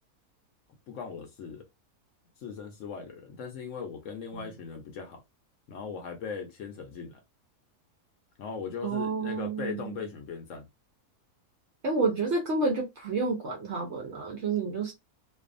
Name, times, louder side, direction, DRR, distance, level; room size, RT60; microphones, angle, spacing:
voice 1, 0.9-1.6 2.4-5.2 5.7-7.2 8.4-10.7, left 6 dB, 65° left, 0.8 m, -39 dB
voice 2, 8.8-10.0 11.8-14.9, right 3 dB, 65° right, 0.7 m, -30 dB
2.5 x 2.3 x 2.4 m
omnidirectional pair, 1.6 m